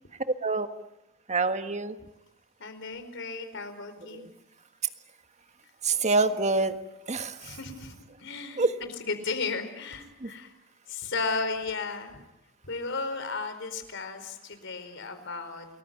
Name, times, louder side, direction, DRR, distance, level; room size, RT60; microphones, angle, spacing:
voice 1, 0.4-0.8 1.3-1.9 4.1-4.3 5.8-6.8 7.1-7.5 8.6-8.7 10.2-10.3, right 3 dB, 35° right, 9 dB, 1.6 m, -26 dB
voice 2, 2.6-4.2 7.4-10.5 10.9-12.2 12.6-15.7, left 4 dB, 65° left, 9 dB, 4.5 m, -34 dB
29.5 x 20.5 x 9.3 m, 0.89 s
head